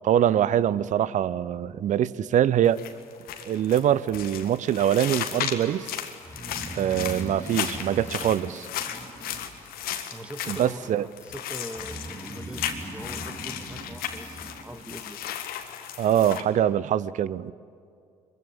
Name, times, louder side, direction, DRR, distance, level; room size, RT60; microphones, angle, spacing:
voice 1, 0.0-2.8 3.4-5.9 6.7-8.7 10.5-11.1 16.0-17.5, right 10 dB, 45° right, 19 dB, 0.7 m, -24 dB
sound 1, 2.6-16.4, left 9 dB, 55° left, 1.8 m, -35 dB
Breathing, 6.2-9.9 11.7-14.8, right 1 dB, 10° left, 4.1 m, -40 dB
voice 2, 10.1-15.2, equal, 5° right, 8 dB, 1.8 m, -42 dB
24.0 x 23.0 x 8.7 m, 2.3 s
figure-of-eight pair, 50°, 18 cm